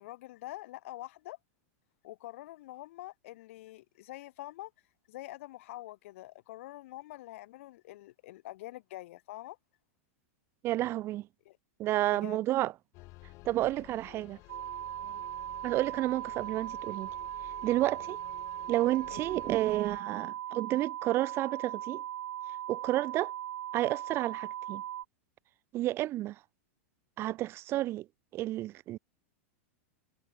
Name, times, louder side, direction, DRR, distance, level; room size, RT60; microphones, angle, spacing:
voice 1, 0.0-1.4 2.0-4.7 5.1-9.6 11.5-11.6 12.1-12.4 15.0-15.2 19.1-19.3, left 17 dB, 65° left, 5.1 m, -46 dB
voice 2, 10.6-11.3 11.8-12.7 13.4-14.4 15.6-17.1 17.6-18.2 18.7-22.0 22.7-23.3 23.7-24.8 25.7-26.4 27.2-28.1 28.3-29.0, right 15 dB, 30° right, 0.6 m, -30 dB
sound 1, 12.9-20.0, left 22 dB, 40° left, 8.0 m, -53 dB
sound 2, 14.5-25.0, right 12 dB, 80° right, 2.5 m, -39 dB
supercardioid pair, 135°, 8 cm